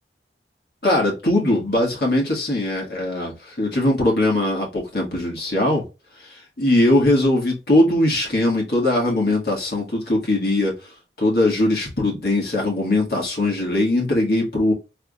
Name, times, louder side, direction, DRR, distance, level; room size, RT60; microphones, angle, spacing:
voice 1, 0.8-5.8 6.6-10.7 11.2-14.7, left 1 dB, 55° left, 1.7 m, -20 dB
3.6 x 3.3 x 2.3 m
head